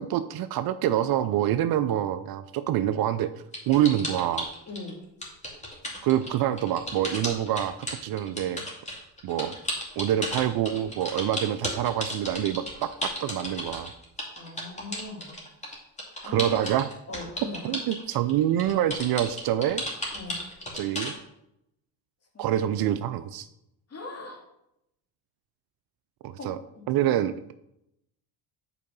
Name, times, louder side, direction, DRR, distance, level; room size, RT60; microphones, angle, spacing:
voice 1, 0.0-3.3 3.7-4.5 6.0-7.7 8.0-8.7 9.2-9.5 10.0-13.9 16.3-16.9 17.6-19.8 20.7-21.1 22.4-23.5 26.2-26.6 26.9-27.3, right 11 dB, 55° right, 12 dB, 0.5 m, -26 dB
sound 1, 3.5-4.9 5.2-21.1, left 1 dB, 15° left, 2.6 m, -34 dB
voice 2, 4.7-5.0 14.4-15.3 16.2-16.6 17.1-17.7 20.1-20.4 22.3-22.7 23.9-24.4 26.3-26.5 26.7-26.8, left 3 dB, 35° left, 0 dB, 2.6 m, -40 dB
8.4 x 4.6 x 5.3 m, 0.82 s
supercardioid pair, 90°, 45 cm